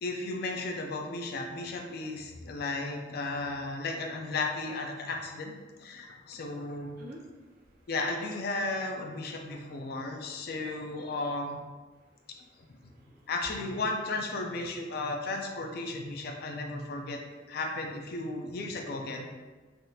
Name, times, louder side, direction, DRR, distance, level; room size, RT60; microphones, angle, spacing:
voice 1, 0.0-6.9 7.9-11.6 13.3-17.2 17.5-19.3, left 2 dB, 60° left, 3 dB, 0.4 m, -34 dB
voice 2, 7.0-7.9 12.4-13.3, equal, 55° right, -2 dB, 0.6 m, -51 dB
3.4 x 2.3 x 2.7 m, 1.3 s
head